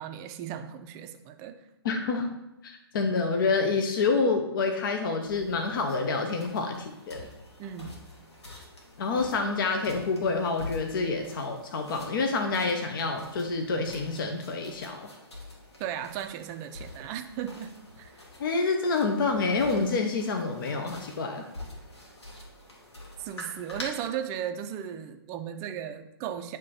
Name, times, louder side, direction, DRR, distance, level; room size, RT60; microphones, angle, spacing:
voice 1, 0.0-1.6 7.6-8.0 15.8-18.2 23.2-26.6, right 9 dB, 25° right, 7 dB, 0.4 m, -36 dB
voice 2, 1.8-2.4 2.6-7.3 9.0-15.1 18.4-21.4, left 4 dB, 50° left, 4 dB, 0.8 m, -28 dB
sound 1, 5.2-23.8, left 2 dB, 85° left, 2.1 m, -46 dB
9.5 x 3.3 x 4.2 m, 0.91 s
hypercardioid pair, 135°, 14 cm